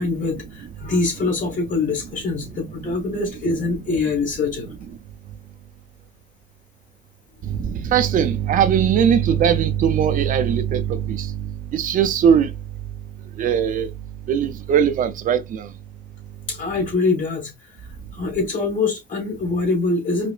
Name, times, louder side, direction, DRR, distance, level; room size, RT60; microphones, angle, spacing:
voice 1, 0.0-4.7 16.5-17.5 18.1-20.3, left 3 dB, 50° left, 2.0 m, -24 dB
voice 2, 7.5-11.3 11.7-12.5 13.4-13.9 14.3-15.7, right 8 dB, 50° right, 0.5 m, -19 dB
4.9 x 2.1 x 2.3 m
cardioid pair, 110°, 17 cm